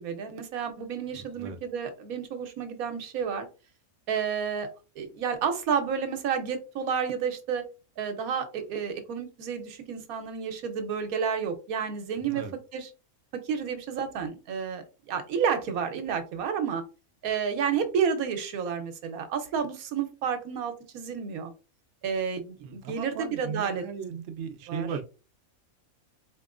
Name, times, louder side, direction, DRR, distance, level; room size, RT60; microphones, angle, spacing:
voice 1, 0.0-3.5 4.1-4.7 5.0-7.7 8.0-12.4 12.7-12.9 13.3-16.8 17.2-21.5 22.0-23.8 24.7-24.9, right 7 dB, 90° right, 7 dB, 1.2 m, -30 dB
voice 2, 1.1-1.6 12.3-12.5 22.6-25.0, right 6 dB, 65° right, 6 dB, 0.9 m, -37 dB
4.2 x 2.9 x 2.4 m, 0.32 s
omnidirectional pair, 1.5 m